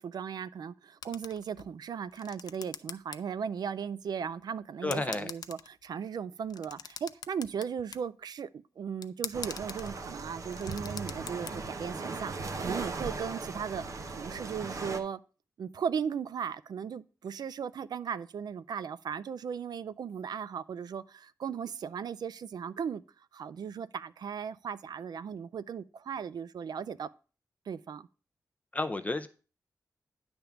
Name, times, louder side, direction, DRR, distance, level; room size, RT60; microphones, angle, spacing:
voice 1, 0.0-13.9 14.2-15.2 15.6-23.0 23.3-27.1 27.7-28.1, right 7 dB, 90° right, 0.4 m, -37 dB
sound 1, 1.0-1.7 2.1-3.2 3.5-3.6 4.4-4.5 4.9-5.9 6.4-8.0 9.0-9.9 10.3-11.5, left 7 dB, 85° left, 0.5 m, -42 dB
voice 2, 4.8-5.3 28.7-29.3, left 2 dB, 20° left, 0.5 m, -31 dB
sound 2, 9.3-15.0, right 3 dB, 50° right, 0.8 m, -38 dB
10.0 x 3.5 x 7.0 m
wide cardioid pair, 175°, 7 cm